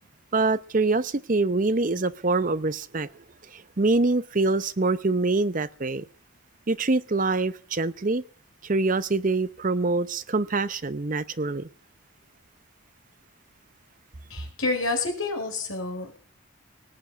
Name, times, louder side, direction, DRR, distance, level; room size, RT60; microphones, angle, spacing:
voice 1, 0.3-3.1 3.5-6.0 6.7-8.2 8.6-11.7, right 3 dB, 40° right, 0.7 m, -25 dB
voice 2, 14.3-16.2, left 3 dB, 70° left, 4.8 m, -29 dB
18.5 x 7.3 x 9.0 m
head